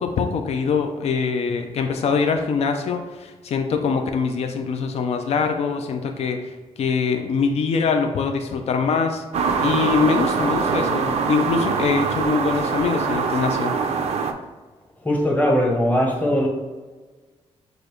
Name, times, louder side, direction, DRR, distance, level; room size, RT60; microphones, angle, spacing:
voice 1, 0.0-6.5 6.8-9.2 9.6-13.8, left 5 dB, 70° left, 5 dB, 0.5 m, -23 dB
sound 1, 9.3-14.3, right 5 dB, 75° right, 0.5 m, -23 dB
voice 2, 15.0-16.5, equal, 15° left, 0 dB, 0.9 m, -20 dB
6.7 x 2.5 x 3.1 m, 1.3 s
wide cardioid pair, 135°, 11 cm